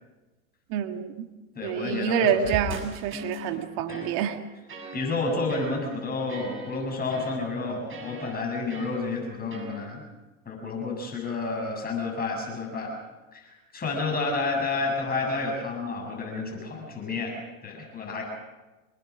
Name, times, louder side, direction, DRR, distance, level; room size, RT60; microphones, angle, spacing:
voice 1, 0.7-1.3 1.6-4.4, right 8 dB, 55° right, 6 dB, 2.0 m, -27 dB
voice 2, 1.6-2.6 3.9-4.1 4.9-10.0 10.5-12.9 13.3-13.5 13.7-18.2, left 3 dB, 20° left, 0 dB, 7.3 m, -30 dB
sound 1, 2.4-9.8, right 1 dB, 30° right, 7.1 m, -40 dB
27.0 x 21.5 x 6.2 m, 1.1 s
hypercardioid pair, 95°, 42 cm